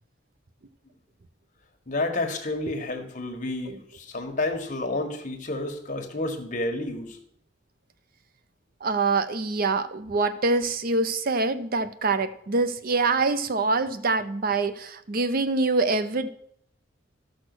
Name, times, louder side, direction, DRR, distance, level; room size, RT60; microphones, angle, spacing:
voice 1, 1.9-7.2, left 2 dB, 40° left, 3 dB, 1.6 m, -30 dB
voice 2, 8.8-16.3, right 3 dB, 50° right, 11 dB, 0.6 m, -25 dB
13.0 x 6.3 x 6.2 m, 0.68 s
head